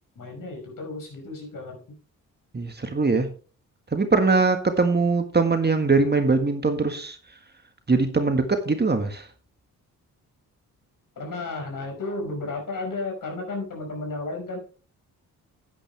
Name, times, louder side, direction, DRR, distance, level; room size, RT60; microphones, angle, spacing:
voice 1, 0.2-1.8 11.2-14.6, left 2 dB, 60° left, 1 dB, 5.3 m, -33 dB
voice 2, 2.5-3.3 3.9-7.2 7.9-9.3, right 3 dB, 25° right, 6 dB, 1.7 m, -22 dB
10.0 x 9.2 x 3.4 m, 0.38 s
supercardioid pair, 55°, 37 cm